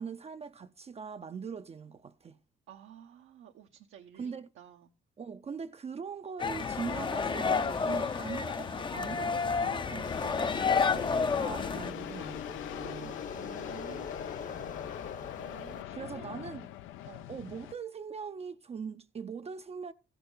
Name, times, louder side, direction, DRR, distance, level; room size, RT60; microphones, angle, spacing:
voice 1, 0.0-2.4 4.2-4.5 5.2-13.2 15.9-16.7 17.3-19.9, right 6 dB, 30° right, 0.5 m, -41 dB
voice 2, 2.7-4.9 13.3-14.1 15.4-16.7 17.0-17.3, right 10 dB, 85° right, 0.9 m, -52 dB
sound 1, 6.4-11.9, left 5 dB, 25° left, 0.5 m, -30 dB
sound 2, 6.6-17.7, left 13 dB, 85° left, 0.5 m, -44 dB
sound 3, 10.0-15.8, left 6 dB, 40° left, 0.9 m, -42 dB
15.0 x 6.7 x 3.9 m
cardioid pair, 90°, 20 cm